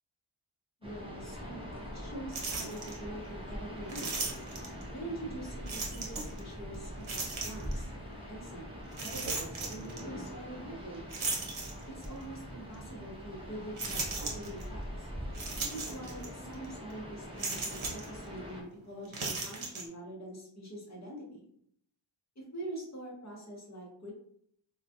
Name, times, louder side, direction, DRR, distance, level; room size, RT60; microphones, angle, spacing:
voice 1, 0.8-1.6 1.9-4.3 4.9-7.9 8.3-8.6 9.0-11.2 11.9-15.1 15.7-21.5 22.4-24.1, right 1 dB, 35° left, -3 dB, 0.9 m, -44 dB
sound 1, 0.8-18.6, equal, 10° right, 0.6 m, -43 dB
sound 2, 2.3-3.0 3.9-4.8 5.7-6.4 7.0-7.8 8.9-10.0 11.1-12.2 12.7-12.8 13.8-14.6 15.3-16.3 16.5-16.7 17.4-18.1 19.1-19.8, right 3 dB, 75° right, 0.7 m, -36 dB
2.3 x 2.3 x 2.7 m, 0.68 s
wide cardioid pair, 70°, 48 cm